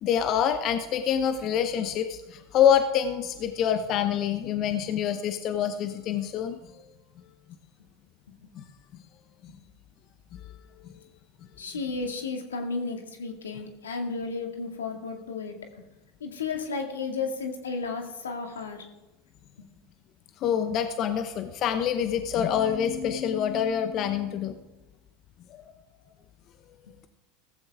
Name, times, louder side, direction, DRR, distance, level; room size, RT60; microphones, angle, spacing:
voice 1, 0.0-6.8 8.5-8.6 20.4-24.6 25.5-25.6, left 9 dB, 45° left, 8 dB, 1.0 m, -26 dB
voice 2, 11.6-15.6 16.2-18.9, left 4 dB, 85° left, 4 dB, 2.1 m, -33 dB
16.0 x 15.0 x 3.6 m, 1.1 s
hypercardioid pair, 90°, 0 cm